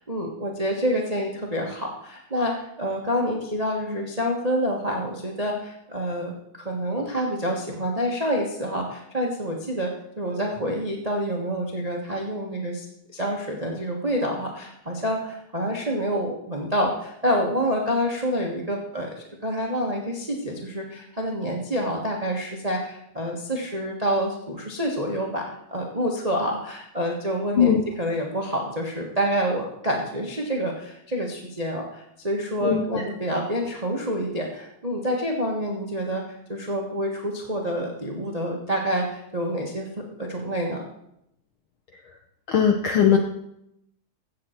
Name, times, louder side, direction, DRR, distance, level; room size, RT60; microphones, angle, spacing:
voice 1, 0.0-12.9 13.1-19.1 19.4-39.9 40.2-40.8, equal, 45° right, 0 dB, 0.5 m, -27 dB
voice 2, 32.6-33.0 42.5-43.2, left 8 dB, 75° left, 4 dB, 1.2 m, -19 dB
16.0 x 7.6 x 4.4 m, 0.80 s
omnidirectional pair, 3.4 m